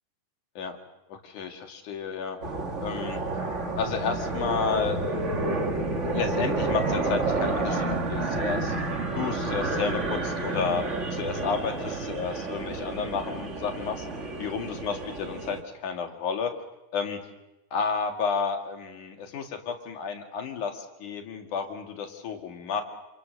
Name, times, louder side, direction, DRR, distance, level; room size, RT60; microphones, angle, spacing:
voice 1, 1.1-2.4 2.8-3.2 3.8-5.4 6.1-8.7 9.2-10.9 11.1-14.1 14.4-16.5 16.9-17.2 17.7-22.8, left 6 dB, 80° left, 4 dB, 3.5 m, -31 dB
sound 1, 2.4-15.6, right 3 dB, 25° right, 2.0 m, -30 dB
28.0 x 27.0 x 6.6 m, 0.98 s
omnidirectional pair, 3.4 m